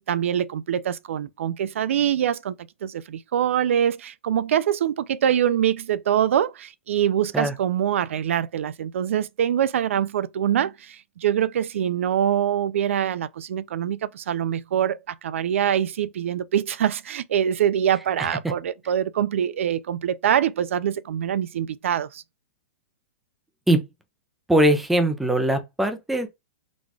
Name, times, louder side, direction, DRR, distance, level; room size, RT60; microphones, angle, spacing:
voice 1, 0.0-2.6 2.8-22.2, right 9 dB, 80° right, 0.3 m, -24 dB
voice 2, 24.5-26.3, right 1 dB, ahead, 0.4 m, -21 dB
4.0 x 2.3 x 4.6 m
supercardioid pair, 175°, 7 cm